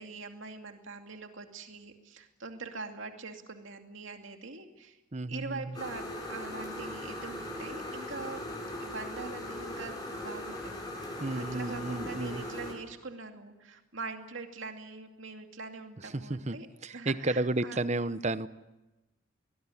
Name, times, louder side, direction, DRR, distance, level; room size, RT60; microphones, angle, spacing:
voice 1, 0.0-5.0 5.3-8.5 8.8-10.7 11.0-16.7 16.9-17.8, right 4 dB, 75° right, 4 dB, 2.5 m, -43 dB
voice 2, 5.1-5.8 11.2-12.4 16.0-18.5, right 2 dB, 35° right, 14 dB, 0.9 m, -32 dB
sound 1, 5.7-12.7, left 1 dB, 20° left, 7.6 m, -39 dB
22.5 x 20.5 x 10.0 m, 1.1 s
head